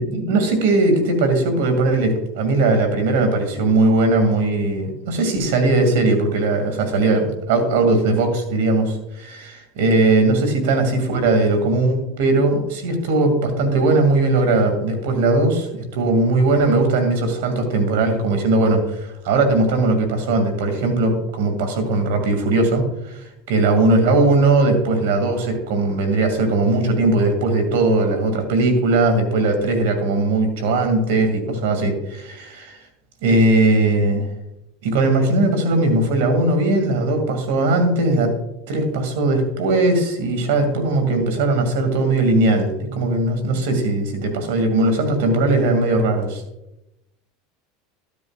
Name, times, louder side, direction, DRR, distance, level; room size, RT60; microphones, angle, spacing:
voice 1, 0.0-32.8 33.2-34.3 34.8-38.3 38.7-46.4, right 2 dB, 80° right, 6 dB, 2.2 m, -19 dB
12.5 x 9.7 x 2.4 m, 0.89 s
supercardioid pair, 115°, 0 cm